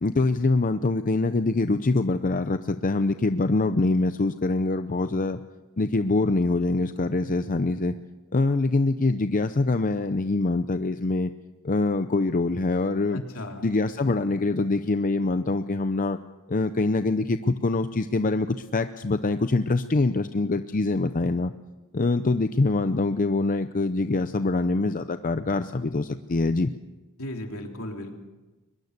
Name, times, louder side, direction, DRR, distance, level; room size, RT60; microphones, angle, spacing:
voice 1, 0.0-5.4 5.8-8.0 8.3-11.3 11.6-13.2 13.6-16.2 16.5-21.5 21.9-26.7, left 3 dB, 40° left, 10 dB, 0.6 m, -24 dB
voice 2, 13.1-13.7 27.2-28.1, left 1 dB, 70° left, 2 dB, 3.4 m, -36 dB
22.5 x 21.5 x 6.7 m, 1.1 s
head